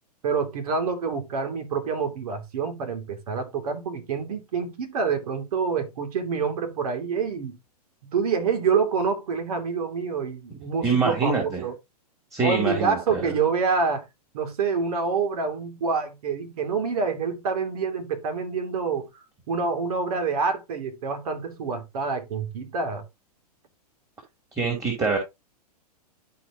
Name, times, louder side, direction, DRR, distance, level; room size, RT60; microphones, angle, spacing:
voice 1, 0.2-7.6 8.1-11.7 12.4-14.0 14.3-19.1 19.5-23.0, right 5 dB, 65° right, 2.7 m, -27 dB
voice 2, 10.8-11.6 12.3-13.3 24.6-25.2, right 4 dB, 15° right, 3.0 m, -25 dB
12.0 x 4.9 x 2.8 m
hypercardioid pair, 120°, 20 cm